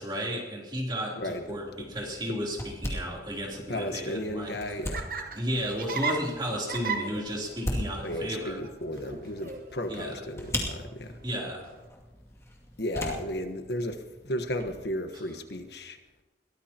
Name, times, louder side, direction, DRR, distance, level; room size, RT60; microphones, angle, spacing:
voice 1, 0.0-4.5 5.3-8.6 9.9-10.2 11.2-11.6, equal, 25° right, -3 dB, 3.3 m, -33 dB
sound 1, 1.2-14.8, left 1 dB, 15° left, 2.4 m, -40 dB
voice 2, 3.7-5.1 8.0-11.2 12.8-16.0, left 1 dB, 65° left, 7 dB, 1.3 m, -34 dB
Laughter, 4.3-11.9, right 4 dB, 50° right, 1.2 m, -38 dB
22.0 x 18.5 x 2.9 m, 1.3 s
head